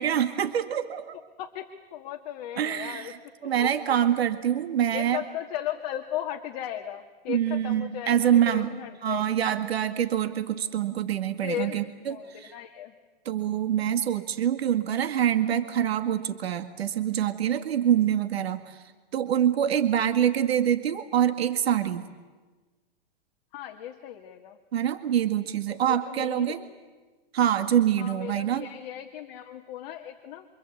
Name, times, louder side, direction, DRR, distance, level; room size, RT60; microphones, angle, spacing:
voice 1, 0.0-1.2 2.6-3.2 3.4-5.2 7.3-8.7 9.0-12.5 13.3-18.8 19.1-22.1 24.7-26.6 27.3-28.7, right 10 dB, 85° right, 9 dB, 2.0 m, -25 dB
voice 2, 1.1-3.1 3.4-4.0 4.9-9.4 11.4-11.8 12.1-12.9 23.5-24.6 25.7-26.7 28.0-30.5, left 11 dB, 45° left, 3 dB, 2.0 m, -36 dB
28.0 x 25.5 x 8.4 m, 1.3 s
hypercardioid pair, 155°, 30 cm